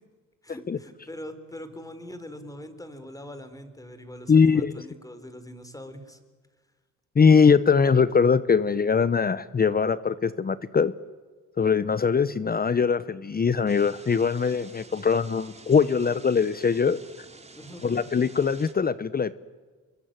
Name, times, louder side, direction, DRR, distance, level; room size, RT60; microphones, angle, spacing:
voice 1, 0.4-6.2 17.6-17.9, equal, 10° left, 10 dB, 4.2 m, -42 dB
voice 2, 4.3-4.8 7.2-10.9 11.6-17.0 17.8-19.3, left 5 dB, 30° left, 15 dB, 0.9 m, -22 dB
sound 1, 13.7-18.7, right 3 dB, 20° right, 3.0 m, -49 dB
28.0 x 22.5 x 9.1 m, 1.4 s
cardioid pair, 90°, 30 cm